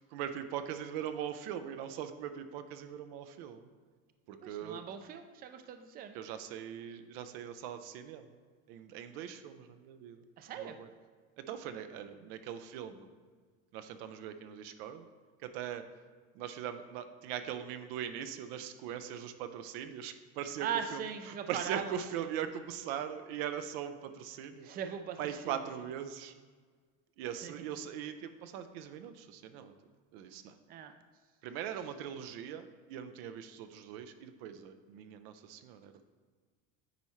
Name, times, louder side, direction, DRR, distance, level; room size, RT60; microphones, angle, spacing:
voice 1, 0.0-3.7 4.3-4.8 6.1-8.4 8.7-10.2 10.6-10.9 11.5-13.1 13.7-15.0 15.4-15.8 16.3-21.0 21.3-24.7 25.2-26.3 27.2-29.7 30.1-30.5 31.4-35.9, right 9 dB, 80° right, 9 dB, 0.6 m, -41 dB
voice 2, 4.4-6.1 10.4-10.8 20.6-22.3 24.6-25.6 27.4-27.5 30.7-30.9, right 8 dB, 30° right, 8 dB, 0.4 m, -40 dB
9.3 x 4.3 x 3.1 m, 1.5 s
supercardioid pair, 125°, 30 cm